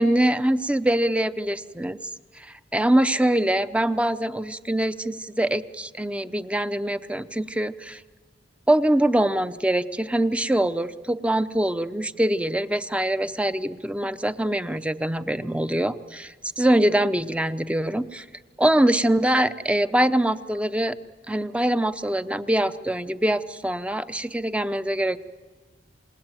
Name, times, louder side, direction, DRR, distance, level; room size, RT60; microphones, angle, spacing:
voice 1, 0.0-2.0 2.4-2.5 2.7-8.0 8.7-18.2 18.6-20.9 21.3-25.2, right 1 dB, 5° right, 12 dB, 0.7 m, -23 dB
27.5 x 19.0 x 9.1 m, 1.4 s
head